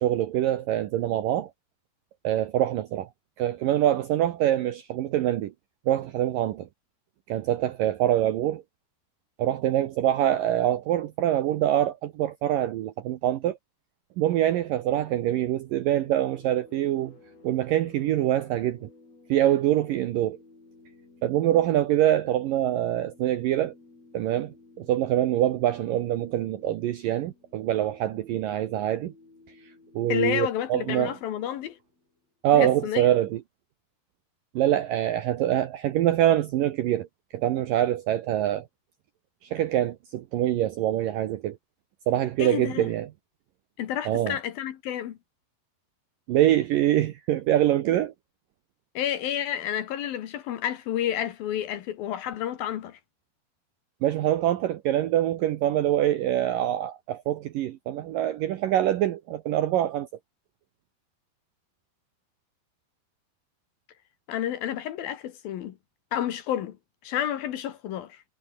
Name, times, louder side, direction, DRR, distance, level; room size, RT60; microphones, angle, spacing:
voice 1, 0.0-1.5 2.2-3.1 3.4-5.5 5.9-6.7 7.3-8.6 9.4-13.6 14.2-17.1 17.4-18.9 19.3-20.4 21.2-23.7 24.1-29.1 30.0-31.1 32.4-33.4 34.6-37.1 37.3-38.7 39.5-41.6 42.1-43.1 44.1-44.4 46.3-48.1 54.0-60.1, right 12 dB, 75° right, 2.1 m, -24 dB
sound 1, 16.0-32.3, left 3 dB, 35° left, 8.5 m, -55 dB
voice 2, 30.1-31.8 32.5-33.1 42.4-42.9 43.8-45.2 48.9-53.0 64.3-65.8 66.1-66.8 67.0-68.2, left 10 dB, 65° left, 2.8 m, -30 dB
omnidirectional pair, 5.1 m